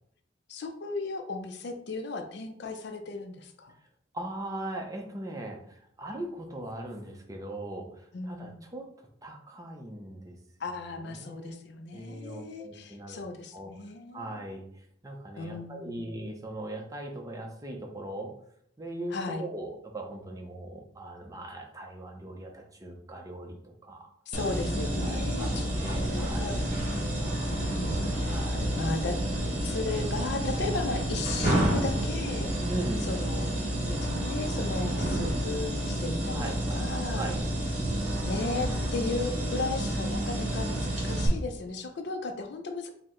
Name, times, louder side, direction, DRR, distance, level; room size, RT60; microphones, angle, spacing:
voice 1, 0.5-3.8 8.1-8.6 10.6-14.4 15.4-16.1 19.1-19.4 24.3-25.7 26.1-26.5 27.2-29.2 29.6-32.5 33.0-33.6 33.8-37.3 38.2-42.9, left 3 dB, 55° left, 6 dB, 0.4 m, -36 dB
voice 2, 4.1-10.4 11.0-11.5 11.9-13.2 13.5-13.7 14.1-18.3 18.8-24.1 24.8-26.6 28.2-28.8 32.7-33.1 36.3-36.6 37.1-37.4, right 1 dB, 15° right, 2 dB, 0.5 m, -39 dB
sound 1, 24.3-41.3, right 1 dB, 35° right, 0.8 m, -30 dB
4.3 x 2.0 x 3.7 m, 0.67 s
head